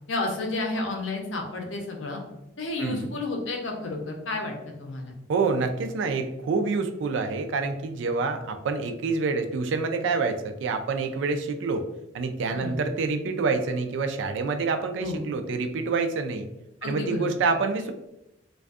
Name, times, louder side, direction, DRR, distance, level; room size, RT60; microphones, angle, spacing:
voice 1, 0.1-2.2 2.6-5.1 12.5-12.9 15.0-15.2 16.8-17.4, left 2 dB, 75° left, 1 dB, 0.6 m, -31 dB
voice 2, 2.8-3.1 5.3-11.9 12.1-16.5 16.8-17.9, right 4 dB, 70° right, 7 dB, 0.3 m, -27 dB
2.5 x 2.3 x 2.3 m, 0.89 s
head